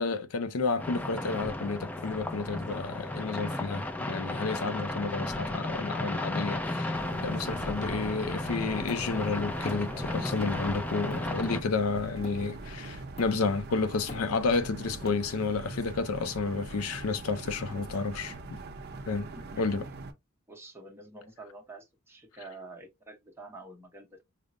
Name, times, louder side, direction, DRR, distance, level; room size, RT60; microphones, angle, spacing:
voice 1, 0.0-18.3 19.1-19.3 19.6-19.8, left 4 dB, 85° left, 0.5 m, -31 dB
sound 1, 0.8-11.6, left 1 dB, 5° left, 0.3 m, -34 dB
sound 2, 6.9-20.1, right 3 dB, 50° right, 0.5 m, -43 dB
Hammer, 8.9-10.0 10.4-10.7 11.1-12.7 13.2-13.6 13.9-15.6, left 1 dB, 30° left, 0.9 m, -47 dB
voice 2, 19.3-20.0 20.5-24.2, right 2 dB, 10° right, 0.8 m, -48 dB
5.0 x 2.0 x 2.5 m
head